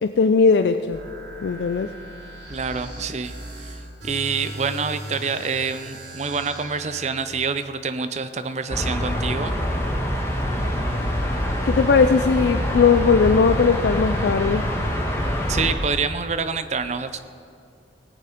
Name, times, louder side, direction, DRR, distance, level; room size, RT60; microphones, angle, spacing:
voice 1, 0.0-1.0 1.4-1.9 11.7-14.6, left 5 dB, 70° left, 9 dB, 0.4 m, -18 dB
sound 1, 0.9-7.1, right 1 dB, 85° right, 3.4 m, -38 dB
voice 2, 2.5-3.8 4.0-9.6 15.5-17.2, right 5 dB, 40° right, 11 dB, 0.5 m, -27 dB
sound 2, 8.7-15.7, equal, 15° left, 1.5 m, -25 dB
17.5 x 8.4 x 5.1 m, 2.3 s
head